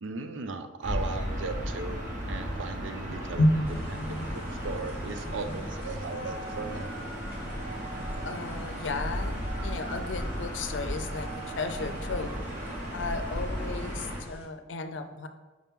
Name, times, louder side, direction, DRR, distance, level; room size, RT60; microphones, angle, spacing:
voice 1, 0.0-3.4 3.9-6.9, right 4 dB, 75° right, 8 dB, 0.5 m, -37 dB
Gull seagull / Ocean, 0.8-14.2, equal, 40° right, 1.2 m, -35 dB
voice 2, 3.1-4.3 5.2-5.6 8.2-12.3 12.9-15.3, left 2 dB, 70° left, 8 dB, 0.5 m, -32 dB
sound 1, 3.6-14.5, equal, 10° right, 1.2 m, -48 dB
Wind instrument woodwind instrument, 5.9-12.4, right 3 dB, 20° left, 1.0 m, -46 dB
5.8 x 4.8 x 3.6 m, 1.2 s
head